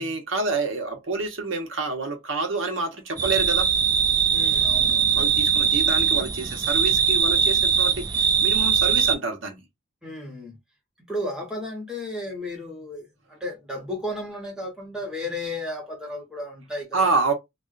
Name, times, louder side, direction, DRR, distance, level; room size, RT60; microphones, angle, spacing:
voice 1, 0.0-3.7 5.1-9.6 16.9-17.3, right 3 dB, 70° right, 1.2 m, -28 dB
sound 1, 3.2-9.1, right 6 dB, 20° right, 0.3 m, -21 dB
voice 2, 4.3-5.3 10.0-10.6 11.1-17.1, left 1 dB, 5° right, 1.3 m, -34 dB
3.3 x 2.6 x 2.5 m
head